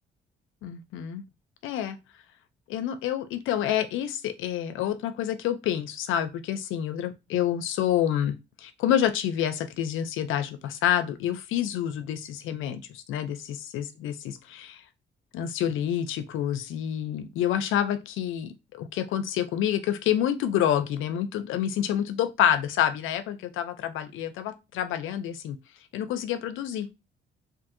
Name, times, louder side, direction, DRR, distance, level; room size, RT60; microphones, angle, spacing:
voice 1, 0.6-1.2 1.6-2.0 2.7-14.8 15.3-25.6 25.9-26.9, left 10 dB, 85° left, 0.5 m, -28 dB
2.6 x 2.6 x 2.5 m
cardioid pair, 90°, 20 cm